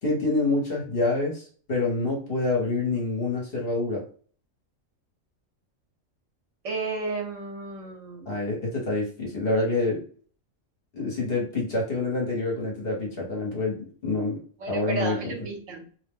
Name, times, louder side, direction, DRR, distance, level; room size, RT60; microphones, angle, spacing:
voice 1, 0.0-1.4 1.7-4.0 8.3-10.0 10.9-14.4 14.7-15.4, left 2 dB, 50° left, -1 dB, 1.0 m, -27 dB
voice 2, 6.6-8.3 14.6-15.8, right 3 dB, 70° right, 1 dB, 1.1 m, -33 dB
2.6 x 2.1 x 3.4 m, 0.43 s
omnidirectional pair, 1.4 m